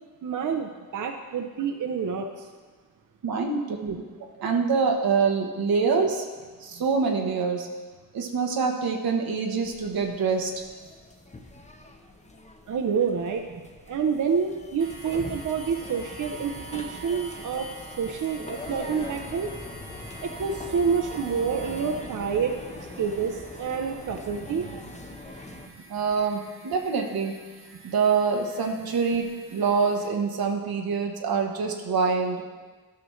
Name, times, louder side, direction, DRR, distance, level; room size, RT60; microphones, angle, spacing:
voice 1, 0.2-2.5 12.7-17.7 18.0-19.5 20.2-25.0, right 6 dB, 60° right, 3 dB, 0.6 m, -28 dB
voice 2, 3.2-4.0 4.4-6.3 6.6-7.7 8.1-10.5 25.9-27.3 27.8-32.4, right 5 dB, 90° right, 2 dB, 1.0 m, -25 dB
sound 1, 9.6-25.7, left 2 dB, 20° left, 0.7 m, -42 dB
sound 2, 14.8-30.1, right 2 dB, 40° right, 1.3 m, -47 dB
12.5 x 6.0 x 3.1 m, 1.4 s
cardioid pair, 85°, 35 cm